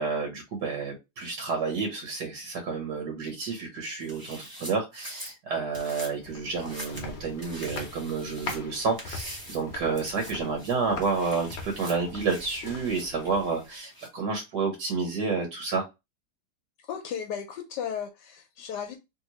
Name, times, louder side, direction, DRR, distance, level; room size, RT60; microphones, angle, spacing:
voice 1, 0.0-15.8, right 4 dB, 75° right, 1.4 m, -30 dB
sound 1, 4.0-5.3 5.7-6.1 6.5-7.1 7.4-8.6 9.0-9.6 9.9-10.3 10.6-14.1, right 1 dB, 15° right, 0.8 m, -44 dB
sound 2, 5.9-13.7, left 3 dB, 50° left, 0.9 m, -42 dB
voice 2, 16.8-19.0, left 8 dB, 85° left, 1.2 m, -35 dB
3.0 x 2.8 x 2.9 m
omnidirectional pair, 1.8 m